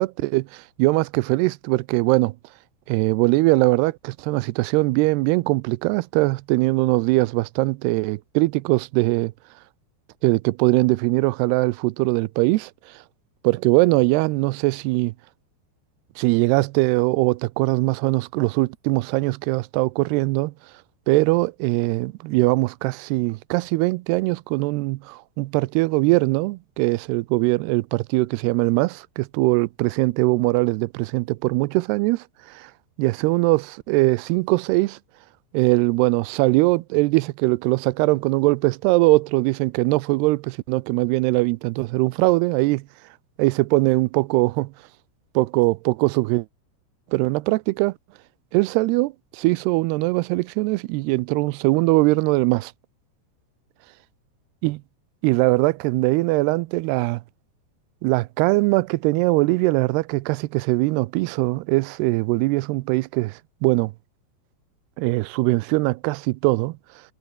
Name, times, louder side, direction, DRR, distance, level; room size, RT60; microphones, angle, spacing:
voice 1, 0.0-2.4 2.9-9.3 10.2-12.7 13.4-15.1 16.2-20.5 21.1-32.7 33.0-35.0 35.5-42.8 43.4-44.7 45.4-46.5 47.1-47.9 48.5-52.7 54.6-54.8 55.2-57.2 58.0-63.9 65.0-66.8, right 22 dB, 80° right, 2.5 m, -21 dB
omnidirectional pair, 5.0 m